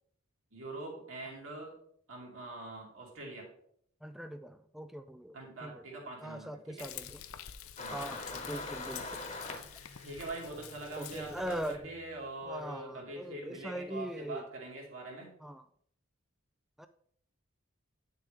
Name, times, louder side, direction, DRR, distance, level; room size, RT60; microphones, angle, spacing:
voice 1, 0.5-1.7 2.1-3.5 5.3-6.9 7.8-8.0 8.5-8.6 10.0-15.3, right 2 dB, 70° right, -2 dB, 2.9 m, -43 dB
voice 2, 4.0-5.4 5.6-5.8 6.2-7.2 7.9-9.2 11.0-11.8 12.5-14.4 15.4-15.6 16.8-16.9, right 1 dB, ahead, 9 dB, 0.3 m, -41 dB
Frying (food), 6.8-11.8, left 10 dB, 90° left, 0.6 m, -48 dB
sound 1, 7.8-12.3, left 2 dB, 35° left, 1.2 m, -44 dB
9.0 x 6.7 x 3.5 m, 0.65 s
head